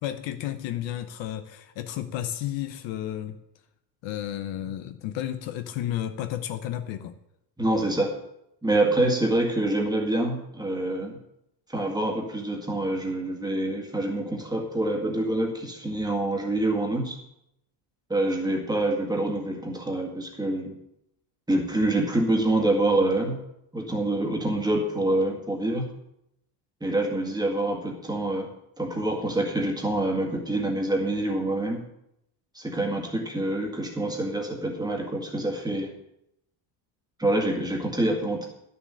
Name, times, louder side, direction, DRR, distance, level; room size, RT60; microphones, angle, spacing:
voice 1, 0.0-3.4 4.0-7.1, left 12 dB, 65° left, 9 dB, 0.9 m, -32 dB
voice 2, 7.6-8.1 8.6-11.2 11.7-17.2 18.1-20.7 21.5-23.4 23.7-25.9 26.8-28.5 28.8-31.8 32.5-35.9 37.2-38.5, right 1 dB, 10° right, 1 dB, 1.9 m, -26 dB
11.0 x 6.9 x 6.4 m, 0.81 s
cardioid pair, 140°, 49 cm